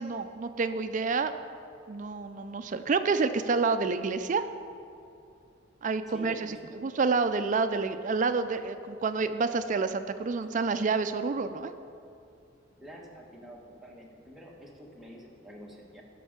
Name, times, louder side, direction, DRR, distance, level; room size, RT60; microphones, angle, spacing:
voice 1, 0.0-1.3 1.9-4.5 5.8-6.6 6.8-11.7, right 4 dB, 40° right, 10 dB, 0.4 m, -28 dB
voice 2, 6.1-6.8 12.8-16.0, equal, ahead, -3 dB, 1.3 m, -48 dB
12.0 x 6.3 x 5.1 m, 2.6 s
head